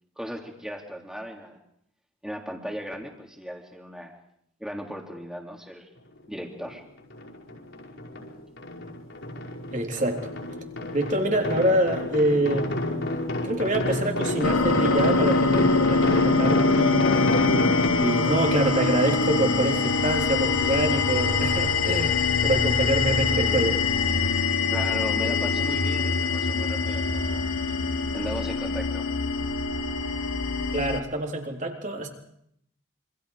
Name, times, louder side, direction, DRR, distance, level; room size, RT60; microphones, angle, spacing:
voice 1, 0.2-1.6 2.2-4.1 4.6-5.9 6.3-6.8 24.7-27.4 28.1-29.1, equal, 5° right, 1 dB, 3.3 m, -36 dB
sound 1, 6.7-6.8 7.1-8.3 8.6-17.9, left 1 dB, 60° left, 5.5 m, -29 dB
voice 2, 9.7-10.3 10.9-12.7 13.4-17.3 18.0-23.8 30.7-32.1, right 1 dB, 35° right, 2 dB, 3.7 m, -26 dB
sound 2, 14.4-31.0, left 4 dB, 80° left, 1.6 m, -24 dB
27.5 x 26.0 x 5.0 m, 0.71 s
head